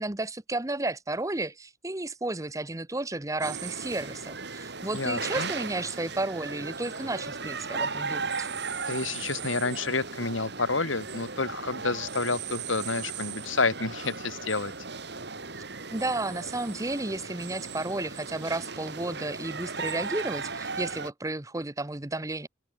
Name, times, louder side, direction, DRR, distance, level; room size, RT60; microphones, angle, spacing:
voice 1, 0.0-8.5 15.9-22.5, right 2 dB, 15° right, 0.9 m, -32 dB
sound 1, 3.4-21.1, right 4 dB, 60° right, 4.3 m, -36 dB
voice 2, 4.9-5.5 8.9-14.7, left 3 dB, 80° left, 2.7 m, -29 dB
head